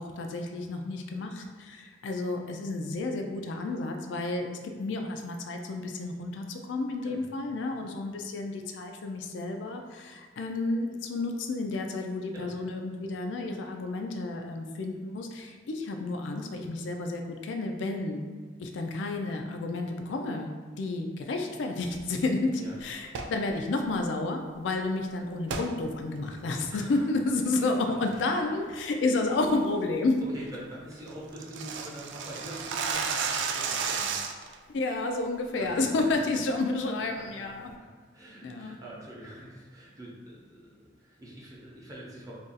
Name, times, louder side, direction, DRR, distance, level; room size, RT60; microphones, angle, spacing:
voice 1, 0.0-18.2 18.6-30.2 34.7-37.6 38.4-38.8, left 2 dB, 75° left, 4 dB, 0.4 m, -31 dB
voice 2, 7.0-7.7 12.3-12.5 22.6-22.8 26.7-27.1 27.5-28.6 30.1-34.2 35.6-35.8 36.9-37.9 38.1-42.4, right 1 dB, 20° right, -6 dB, 0.7 m, -45 dB
sound 1, 23.1-23.4 25.5-25.7 26.2-26.3 26.8-27.1 27.4-27.8 28.1-28.4 28.7-28.8 29.2-29.5 29.8-29.9 30.3-30.4 30.5-30.6 30.9-34.6, right 5 dB, 70° right, 0.3 m, -32 dB
2.5 x 2.3 x 3.9 m, 1.6 s
head